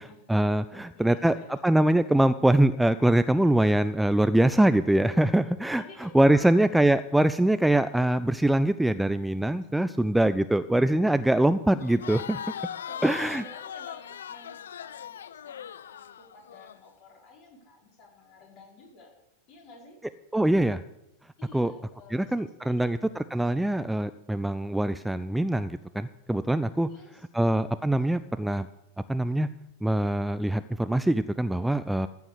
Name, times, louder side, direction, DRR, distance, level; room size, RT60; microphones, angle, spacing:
voice 1, 0.0-1.3 1.6-12.4 13.0-13.4 20.3-20.8 21.5-21.7 22.1-26.9 27.3-28.7 29.1-29.5 29.8-32.1, right 1 dB, 5° right, 13 dB, 0.4 m, -23 dB
voice 2, 0.7-1.6 5.8-6.5 9.6-9.9 12.9-19.1 19.5-20.0 21.4-23.2 26.8-27.5, left 3 dB, 40° left, -1 dB, 4.7 m, -51 dB
Crowd, 11.8-16.8, left 9 dB, 65° left, 0.4 m, -39 dB
14.5 x 6.9 x 8.0 m, 0.90 s
figure-of-eight pair, 90°, 0 cm